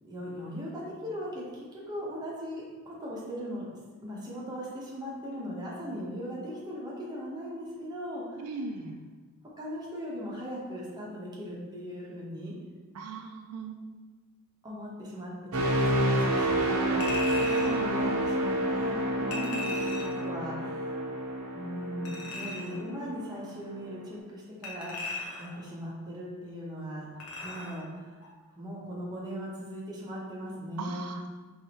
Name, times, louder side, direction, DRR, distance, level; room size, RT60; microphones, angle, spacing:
voice 1, 0.0-3.6 4.0-8.4 9.6-12.5 14.6-21.0 21.5-25.1 25.4-27.1 27.4-28.2 28.6-31.1, equal, 20° right, -6 dB, 1.0 m, -39 dB
voice 2, 8.4-9.0 12.9-13.8 30.8-31.3, right 4 dB, 90° right, 4 dB, 0.4 m, -38 dB
sound 1, 15.5-23.3 23.8-24.0, right 1 dB, 65° right, 0.7 m, -29 dB
Chink clink, 17.0-17.8 19.3-20.2 22.1-22.8 24.6-25.6 27.2-27.8 28.2-28.3, left 3 dB, 75° left, 0.8 m, -38 dB
4.6 x 3.2 x 3.0 m, 1.4 s
head